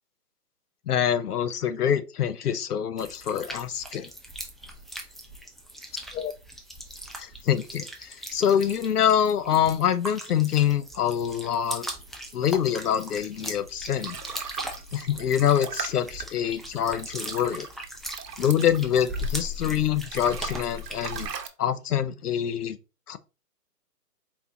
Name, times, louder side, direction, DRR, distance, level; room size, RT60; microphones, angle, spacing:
voice 1, 0.9-4.1 6.1-6.3 7.2-11.9 12.3-14.2 14.9-17.7 18.4-21.3 21.6-22.8 23.1-23.2, left 9 dB, 65° left, 0.6 m, -25 dB
sound 1, 3.0-21.3, equal, ahead, 0.3 m, -39 dB
sound 2, 13.5-19.6 19.9-21.5, right 6 dB, 75° right, 0.9 m, -39 dB
4.3 x 2.8 x 3.4 m
hypercardioid pair, 175°, 49 cm